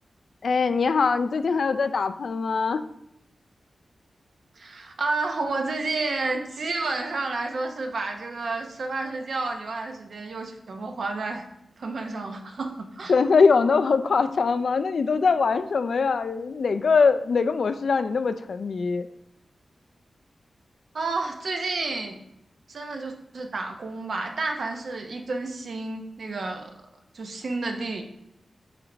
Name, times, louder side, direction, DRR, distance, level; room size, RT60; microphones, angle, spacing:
voice 1, 0.4-2.8 13.1-19.1, left 5 dB, 65° left, 11 dB, 0.4 m, -22 dB
voice 2, 4.6-11.4 11.8-13.1 20.9-22.2 22.7-26.9 27.1-28.0, right 3 dB, 65° right, 4 dB, 0.8 m, -30 dB
8.4 x 3.4 x 3.8 m, 0.78 s
wide cardioid pair, 140°, 0 cm